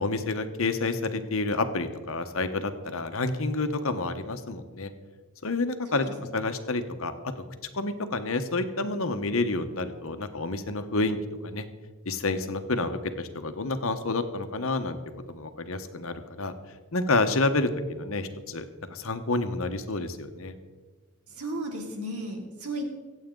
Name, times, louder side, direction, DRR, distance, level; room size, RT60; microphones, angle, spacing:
voice 1, 0.0-4.9 5.4-6.1 6.3-7.1 7.7-11.2 11.4-11.6 12.0-15.0 15.3-16.5 16.9-17.7 18.0-20.6, left 3 dB, 65° left, 8 dB, 1.1 m, -29 dB
voice 2, 21.3-22.9, right 1 dB, 90° right, 2 dB, 2.8 m, -34 dB
24.5 x 8.4 x 3.8 m, 1.4 s
head